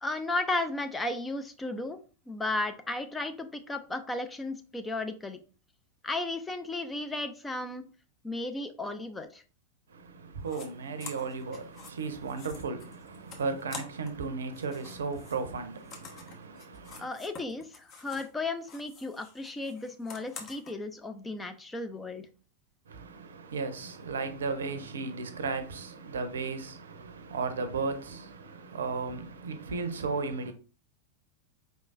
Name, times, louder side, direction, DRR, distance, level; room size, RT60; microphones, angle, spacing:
voice 1, 0.0-2.0 2.3-5.4 6.0-7.8 8.2-9.4 17.0-22.3, left 2 dB, 10° left, 0.5 m, -34 dB
voice 2, 9.9-17.1 22.9-30.5, right 4 dB, 65° right, 0.6 m, -35 dB
sound 1, 10.4-10.7 11.0-14.2 14.5-18.4 18.6-20.7, left 4 dB, 35° left, 1.0 m, -48 dB
4.9 x 3.7 x 2.4 m
figure-of-eight pair, 90°, 0 cm